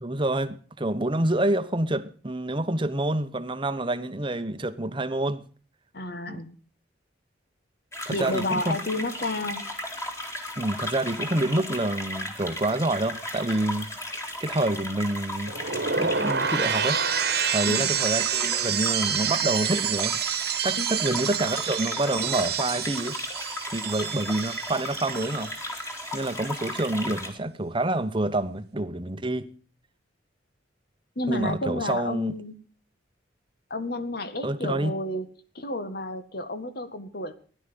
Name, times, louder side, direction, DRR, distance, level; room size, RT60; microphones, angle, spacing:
voice 1, 0.0-5.4 6.3-6.4 8.1-8.8 10.6-13.9 14.4-15.5 16.0-17.0 17.5-20.2 20.6-23.2 23.7-25.5 26.1-29.5 31.3-32.4 34.4-34.9, right 1 dB, 25° right, 1.0 m, -27 dB
voice 2, 5.9-6.6 8.1-9.6 17.7-17.9 20.7-20.9 31.2-32.6 33.7-35.3 35.6-37.3, left 2 dB, 55° left, 1.8 m, -31 dB
sound 1, 7.9-27.3, left 1 dB, 15° left, 2.8 m, -36 dB
sound 2, 15.5-25.6 25.9-26.3, right 7 dB, 60° right, 1.5 m, -28 dB
16.0 x 11.5 x 6.9 m
head